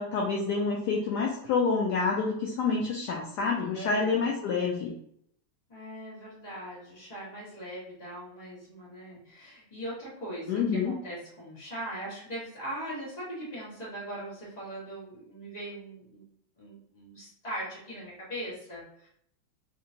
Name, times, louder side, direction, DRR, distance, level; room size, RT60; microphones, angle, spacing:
voice 1, 0.0-4.9 10.5-11.0, left 4 dB, 70° left, -1 dB, 1.0 m, -28 dB
voice 2, 3.7-4.3 5.7-16.2 16.6-19.1, right 1 dB, 25° left, -8 dB, 1.4 m, -40 dB
3.5 x 2.9 x 2.7 m, 0.69 s
omnidirectional pair, 2.2 m